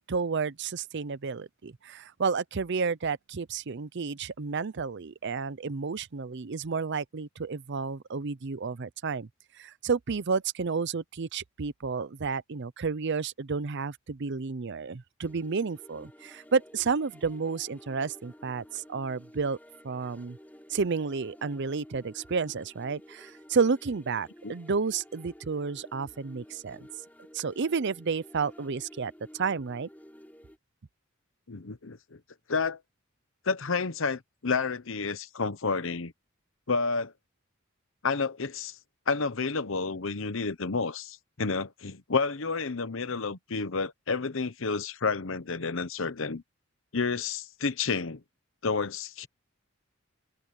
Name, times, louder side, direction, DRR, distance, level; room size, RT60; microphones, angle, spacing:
voice 1, 0.0-9.3 9.6-19.6 19.8-20.4 20.7-26.9 27.3-29.9, right 5 dB, 55° right, 0.6 m, -31 dB
sound 1, 15.2-30.6, equal, 10° left, 3.6 m, -52 dB
voice 2, 31.5-32.2 32.5-32.8 33.4-36.1 36.7-37.1 38.0-38.8 39.1-46.4 46.9-48.2 48.6-49.3, left 4 dB, 65° left, 1.0 m, -30 dB
head